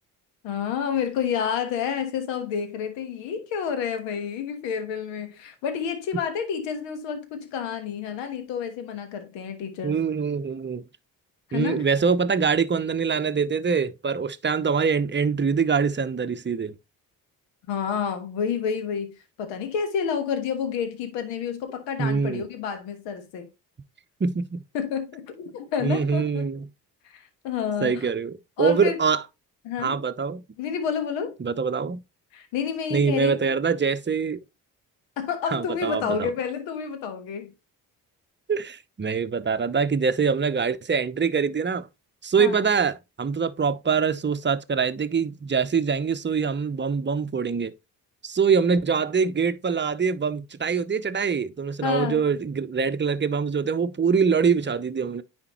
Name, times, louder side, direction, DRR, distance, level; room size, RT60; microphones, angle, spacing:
voice 1, 0.4-10.0 11.5-11.8 17.7-23.5 24.7-26.5 27.0-28.1 28.6-29.0 29.6-30.0 30.6-31.3 32.3-33.3 35.2-37.5 42.4-42.6 51.8-52.2, left 7 dB, 80° left, 1.4 m, -29 dB
voice 2, 9.8-10.8 11.5-16.7 22.0-22.4 24.2-24.6 25.8-26.7 27.8-29.2 29.8-30.4 31.4-32.0 32.9-34.4 35.5-36.3 38.5-41.9 42.2-47.7 48.2-55.2, right 5 dB, 25° right, 0.8 m, -24 dB
9.8 x 4.4 x 3.0 m
hypercardioid pair, 45°, 44 cm